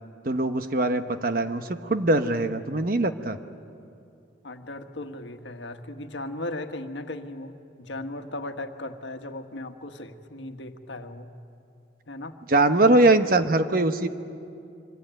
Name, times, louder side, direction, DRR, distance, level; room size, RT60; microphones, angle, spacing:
voice 1, 0.2-3.4 12.5-14.1, right 2 dB, 50° right, 8 dB, 1.1 m, -22 dB
voice 2, 4.4-11.3 12.1-12.4, left 2 dB, 85° left, 6 dB, 1.5 m, -37 dB
25.5 x 24.5 x 9.1 m, 2.5 s
head